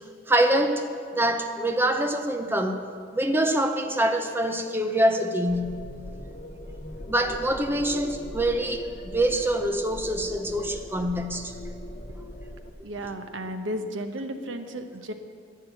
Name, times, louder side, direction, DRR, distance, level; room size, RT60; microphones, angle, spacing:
voice 1, 0.3-2.8 3.1-5.8 7.1-11.5, right 1 dB, 10° right, 6 dB, 0.8 m, -25 dB
sound 1, 5.5-12.7, left 1 dB, 40° left, 1.1 m, -40 dB
voice 2, 12.8-15.1, equal, 80° right, 7 dB, 1.0 m, -33 dB
11.0 x 9.5 x 8.1 m, 2.2 s
head